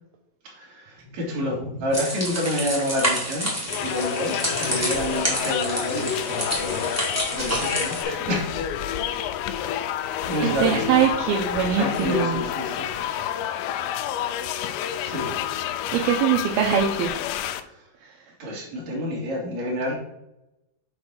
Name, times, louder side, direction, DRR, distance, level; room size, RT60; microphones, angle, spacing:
voice 1, 0.6-3.5 3.8-8.5 10.3-10.8 11.7-12.9 15.0-15.3 18.4-19.9, left 1 dB, 45° right, -3 dB, 3.3 m, -28 dB
sound 1, 1.0-4.9 5.9-6.5 7.0-7.1 7.5-7.9 9.0-9.1 10.5-10.9 12.1-12.2, left 2 dB, 60° right, 3.6 m, -43 dB
sound 2, 1.9-8.0, equal, 5° right, 1.6 m, -28 dB
sound 3, 3.7-17.6, left 10 dB, 85° left, 2.8 m, -29 dB
voice 2, 10.4-12.4 15.9-17.3 18.0-18.2, right 8 dB, 75° right, 2 dB, 2.3 m, -23 dB
7.4 x 4.5 x 6.3 m, 0.88 s
omnidirectional pair, 5.0 m